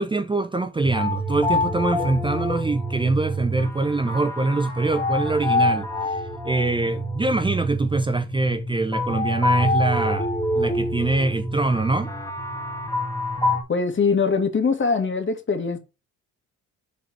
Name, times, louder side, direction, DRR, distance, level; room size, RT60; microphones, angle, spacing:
voice 1, 0.0-10.3 10.6-12.1, right 3 dB, 15° right, 0.7 m, -24 dB
sound 1, 0.8-13.6, left 1 dB, 10° left, 1.8 m, -26 dB
voice 2, 13.7-15.8, left 5 dB, 40° left, 2.2 m, -22 dB
7.2 x 4.1 x 4.4 m
cardioid pair, 90°, 30 cm